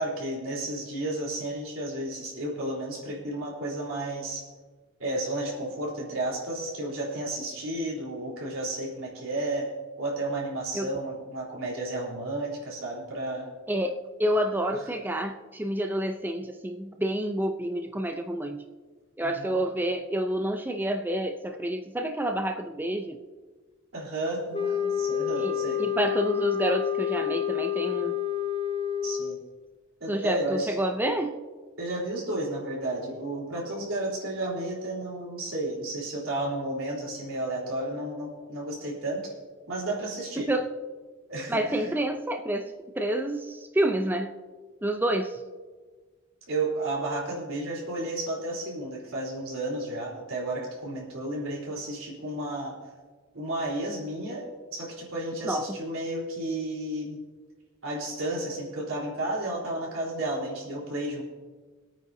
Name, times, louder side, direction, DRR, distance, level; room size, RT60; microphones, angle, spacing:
voice 1, 0.0-4.5 5.0-9.7 10.0-13.5 14.7-14.8 19.2-19.6 23.9-25.8 29.0-29.4 30.0-30.7 31.8-39.3 39.7-40.5 41.3-41.9 46.5-52.8 53.3-54.5 54.7-57.2 57.8-61.2, right 1 dB, 80° right, -4 dB, 3.8 m, -32 dB
voice 2, 13.7-18.6 19.2-23.2 25.4-25.5 25.8-28.1 30.1-31.4 40.4-40.7 41.5-44.3 44.8-45.4 55.4-55.8, right 1 dB, 10° right, 5 dB, 0.5 m, -28 dB
sound 1, 24.5-29.4, left 9 dB, 30° left, 0.9 m, -28 dB
24.0 x 8.9 x 2.7 m, 1.4 s
head